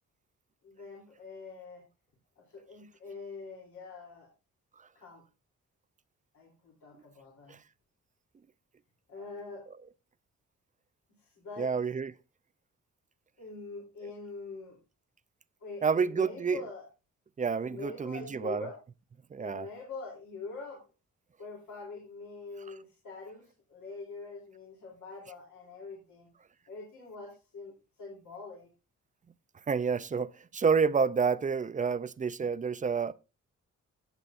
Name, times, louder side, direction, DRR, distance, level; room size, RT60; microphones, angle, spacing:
voice 1, 0.6-1.8 2.4-4.3 4.9-5.2 6.3-7.6 9.1-9.6 11.2-11.7 13.4-14.8 15.6-16.9 17.6-18.8 19.4-20.8 21.4-26.3 26.7-27.7 28.0-28.7, left 4 dB, 80° left, 3.3 m, -44 dB
voice 2, 11.6-12.1 15.8-16.6 17.4-18.7 19.3-19.7 29.7-33.1, right 5 dB, 25° right, 0.4 m, -29 dB
16.5 x 8.1 x 2.6 m
wide cardioid pair, 150°, 29 cm